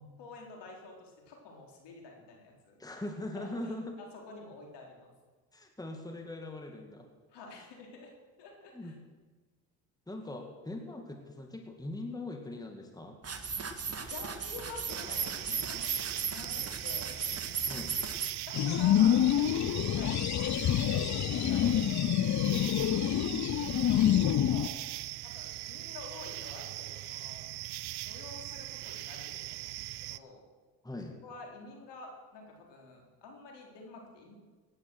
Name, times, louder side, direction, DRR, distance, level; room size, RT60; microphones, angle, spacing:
voice 1, 0.2-3.0 3.3-5.1 7.3-8.1 8.4-8.9 14.1-17.2 18.5-20.3 21.1-21.7 23.0-23.2 23.5-24.7 25.2-27.5 28.0-30.4 31.2-34.3, left 3 dB, 65° left, 0 dB, 4.1 m, -49 dB
voice 2, 2.8-3.9 5.5-7.1 8.7-8.9 10.1-13.2 17.7-18.0 23.0-23.5 30.8-31.2, left 2 dB, 10° left, 3 dB, 2.2 m, -41 dB
sound 1, 13.2-18.3, right 6 dB, 30° right, 1.9 m, -36 dB
sound 2, 14.9-30.2, right 17 dB, 60° right, 0.6 m, -41 dB
sound 3, 18.5-24.7, left 11 dB, 40° left, 0.7 m, -27 dB
17.5 x 9.9 x 6.3 m, 1.4 s
hypercardioid pair, 65°, 45 cm